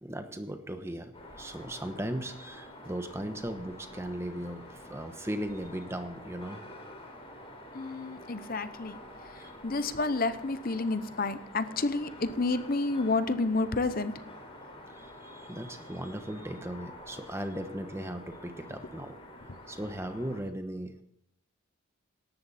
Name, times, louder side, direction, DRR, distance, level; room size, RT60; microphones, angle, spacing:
voice 1, 0.0-6.6 9.4-9.5 14.9-19.2 19.7-21.0, right 1 dB, 10° right, 7 dB, 1.0 m, -37 dB
sound 1, 1.1-20.4, left 1 dB, 25° left, 3.4 m, -48 dB
voice 2, 7.7-14.2, left 3 dB, 40° left, 12 dB, 0.8 m, -30 dB
18.0 x 13.5 x 4.2 m, 0.75 s
head